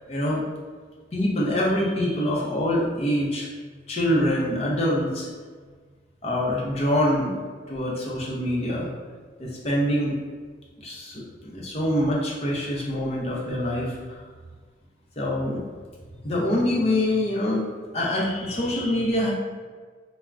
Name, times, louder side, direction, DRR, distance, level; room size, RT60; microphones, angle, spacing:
voice 1, 0.1-0.4 1.1-3.5 3.9-5.3 6.2-7.4 7.7-8.9 9.4-10.2 10.8-14.2 15.2-15.6 16.2-17.7 17.9-19.3, left 1 dB, 35° left, -4 dB, 0.5 m, -25 dB
3.4 x 2.0 x 2.4 m, 1.5 s
head